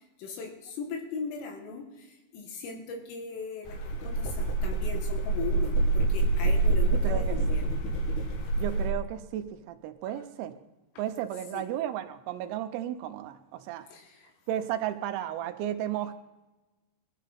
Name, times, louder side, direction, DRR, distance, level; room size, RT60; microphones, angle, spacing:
voice 1, 0.2-7.6 10.1-10.2 11.5-11.7 13.9-14.3, left 5 dB, 75° left, 2 dB, 4.3 m, -39 dB
sound 1, 3.6-8.9, right 3 dB, 60° left, 3.4 m, -26 dB
voice 2, 7.0-7.6 8.6-10.5 11.0-13.9 14.5-16.1, right 11 dB, 85° right, 9 dB, 3.6 m, -34 dB
21.0 x 12.5 x 4.2 m, 1.1 s
omnidirectional pair, 6.0 m